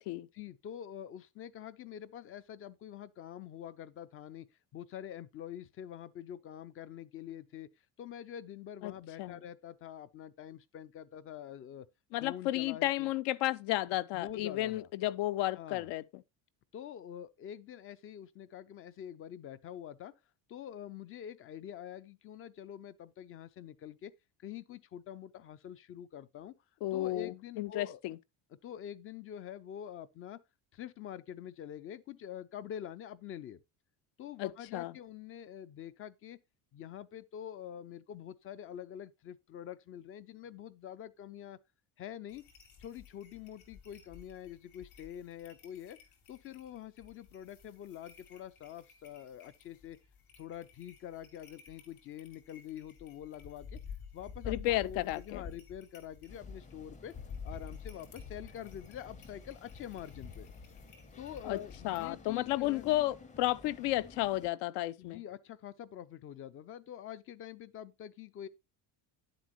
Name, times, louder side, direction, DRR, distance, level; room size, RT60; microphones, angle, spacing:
voice 1, 0.3-4.5 4.7-7.7 8.0-11.9 12.2-13.1 13.9-14.9 15.5-15.9 16.7-20.1 20.5-24.1 24.4-26.5 26.9-28.0 28.6-30.4 30.7-33.6 34.2-36.4 36.7-41.6 42.0-42.5 42.8-46.0 46.3-50.0 50.4-53.8 54.1-57.1 57.4-60.5 61.2-62.8 65.0-68.5, left 10 dB, 35° left, 0.4 m, -46 dB
voice 2, 12.1-16.0 26.8-28.2 34.4-34.9 54.5-55.4 61.4-61.6 61.8-65.2, left 16 dB, 70° left, 0.6 m, -33 dB
sound 1, 42.3-62.1, left 6 dB, 55° left, 3.8 m, -51 dB
sound 2, 56.3-64.5, left 3 dB, 15° left, 0.8 m, -54 dB
10.5 x 7.7 x 3.0 m
cardioid pair, 165°, 43 cm